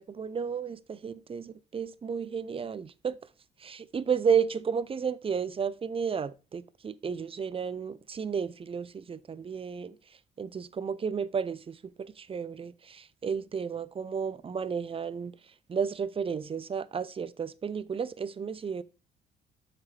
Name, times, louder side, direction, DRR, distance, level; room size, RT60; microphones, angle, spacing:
voice 1, 0.0-3.2 3.6-10.0 10.4-15.3 15.7-18.8, right 6 dB, 30° right, 0.5 m, -32 dB
7.4 x 5.9 x 3.1 m
cardioid pair, 90°, 20 cm